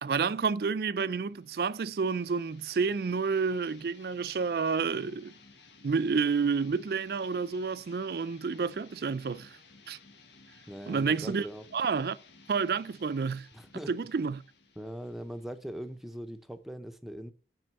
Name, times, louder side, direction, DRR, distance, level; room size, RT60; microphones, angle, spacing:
voice 1, 0.0-5.3 5.8-9.6 9.9-10.0 10.9-11.5 11.7-12.2 12.5-13.5 13.9-14.4, right 5 dB, 55° right, 0.4 m, -29 dB
sound 1, 1.2-16.6, left 4 dB, 80° left, 1.6 m, -58 dB
voice 2, 10.7-11.6 13.5-13.9 14.8-17.3, equal, ahead, 0.7 m, -41 dB
7.7 x 6.2 x 7.5 m
head